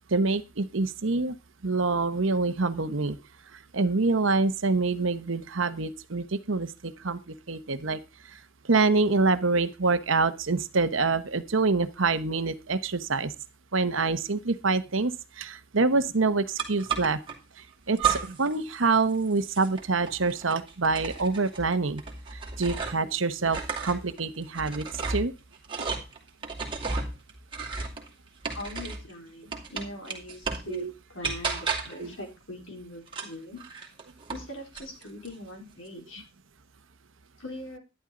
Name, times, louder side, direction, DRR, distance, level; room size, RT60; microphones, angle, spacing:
voice 1, 0.1-1.3 1.6-3.2 3.5-8.0 8.6-13.3 13.7-17.2 17.9-22.0 22.6-25.3 30.7-30.9 32.0-32.1, right 3 dB, 65° right, 11 dB, 1.0 m, -26 dB
sound 1, 16.6-17.4 18.0-18.6 18.8-23.1 23.4-29.1 29.5-30.7 31.2-32.1 33.1-34.5 34.7-35.3, right 5 dB, 25° right, 2.6 m, -33 dB
voice 2, 28.5-33.6 34.3-36.2 37.4-37.8, left 1 dB, 65° left, 1 dB, 4.1 m, -41 dB
12.0 x 11.0 x 3.8 m, 0.28 s
head